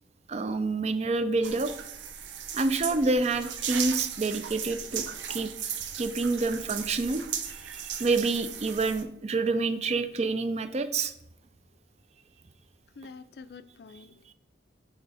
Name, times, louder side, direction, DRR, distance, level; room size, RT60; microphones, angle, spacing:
voice 1, 0.3-1.7 2.5-5.0 5.3-5.5 6.0-7.2 7.5-11.1, right 3 dB, 35° right, 10 dB, 0.4 m, -28 dB
sound 1, 1.4-9.0, right 8 dB, 90° right, 0.6 m, -36 dB
voice 2, 13.0-14.3, left 4 dB, 60° left, 13 dB, 0.4 m, -47 dB
6.7 x 3.5 x 4.6 m, 0.79 s
head